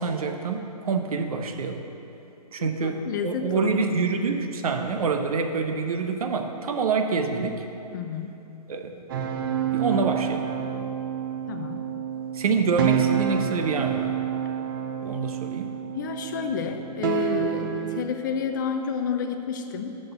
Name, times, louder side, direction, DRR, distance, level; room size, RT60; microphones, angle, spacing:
voice 1, 0.0-1.8 2.5-7.6 8.7-9.0 9.7-10.5 12.3-14.2 15.0-15.7, right 4 dB, 60° right, 6 dB, 0.8 m, -26 dB
voice 2, 2.6-3.9 7.9-8.3 11.5-11.9 15.9-20.0, left 6 dB, 30° left, 6 dB, 0.4 m, -30 dB
sound 1, 9.1-18.0, right 9 dB, 35° right, 0.5 m, -28 dB
6.5 x 6.2 x 6.7 m, 2.9 s
figure-of-eight pair, 135°, 21 cm